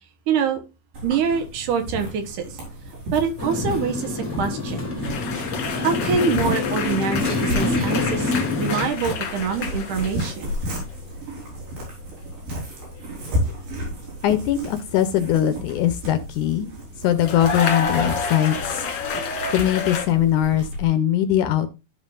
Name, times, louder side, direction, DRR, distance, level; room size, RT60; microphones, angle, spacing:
voice 1, 0.3-0.6 1.0-2.5 3.1-4.9 5.8-10.5, right 6 dB, 70° right, 6 dB, 2.4 m, -25 dB
sound 1, 0.9-20.9, equal, 85° right, 5.8 m, -33 dB
Motorcycle, 3.4-8.9, left 3 dB, 15° left, 1.6 m, -26 dB
sound 2, 5.0-10.5 10.8-11.2 13.1-13.4 17.2-20.1, left 4 dB, 55° left, 2.5 m, -29 dB
voice 2, 14.2-16.7 17.0-18.9 19.5-21.7, left 11 dB, 80° left, 9 dB, 1.9 m, -21 dB
13.5 x 5.5 x 2.5 m, 0.28 s
omnidirectional pair, 4.0 m